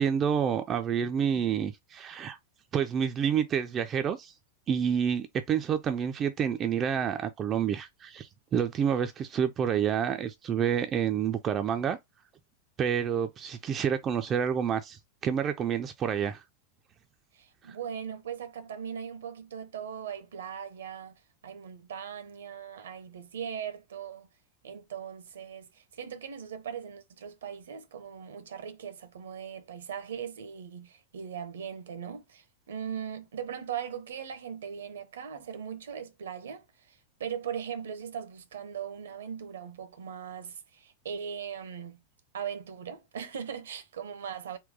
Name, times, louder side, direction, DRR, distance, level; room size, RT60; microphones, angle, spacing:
voice 1, 0.0-2.4 2.7-4.3 4.7-12.0 12.8-16.4, right 8 dB, 25° right, 0.4 m, -28 dB
voice 2, 17.3-24.3 24.6-42.0 42.3-44.6, right 8 dB, 65° right, 0.7 m, -39 dB
3.8 x 2.2 x 3.9 m
figure-of-eight pair, 90°, 0 cm